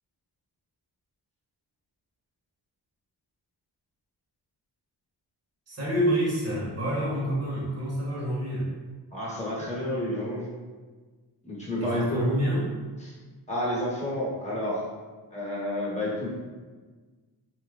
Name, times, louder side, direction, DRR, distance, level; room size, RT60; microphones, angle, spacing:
voice 1, 5.7-8.7 11.8-12.7, equal, 35° right, -6 dB, 1.2 m, -27 dB
voice 2, 9.1-10.5 11.4-12.4 13.0-13.1 13.5-14.8 15.3-16.3, left 1 dB, 15° left, -6 dB, 1.1 m, -30 dB
3.3 x 2.9 x 2.4 m, 1.4 s
cardioid pair, 55°, 42 cm